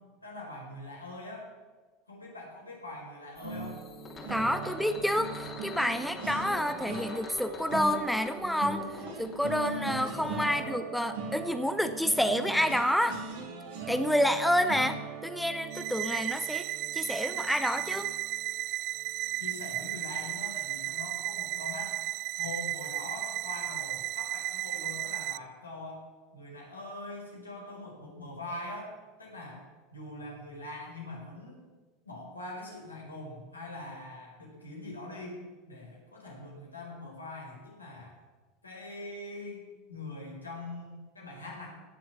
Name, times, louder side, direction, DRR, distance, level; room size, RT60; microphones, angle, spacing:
voice 1, 0.2-1.5 2.1-3.8 9.7-10.7 19.4-22.0 22.4-26.0 26.3-29.6 29.9-31.6 32.0-35.4 35.7-38.2 38.6-41.7, left 2 dB, 85° left, -2 dB, 4.5 m, -43 dB
sound 1, 3.4-10.3, left 3 dB, 30° left, 3.1 m, -46 dB
sound 2, 3.4-18.6 19.0-19.2 19.5-19.7, right 3 dB, 65° right, 2.9 m, -40 dB
voice 2, 4.3-8.8 9.2-13.2 13.9-16.7 16.9-18.1, equal, ahead, 9 dB, 1.0 m, -29 dB
sound 3, 15.7-25.4, right 16 dB, 50° right, 0.3 m, -34 dB
17.0 x 7.6 x 7.2 m, 1.3 s
figure-of-eight pair, 80°, 0 cm